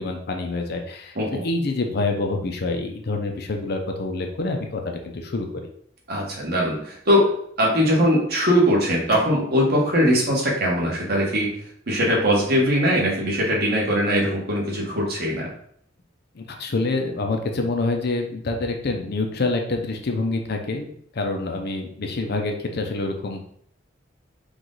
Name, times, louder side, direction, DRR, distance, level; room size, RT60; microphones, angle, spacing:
voice 1, 0.0-5.7 16.3-20.9 21.1-23.4, left 3 dB, 55° left, 3 dB, 0.6 m, -26 dB
voice 2, 6.1-7.3 7.6-11.5 11.9-15.5, equal, 55° right, -3 dB, 1.5 m, -21 dB
4.7 x 2.5 x 4.0 m, 0.64 s
head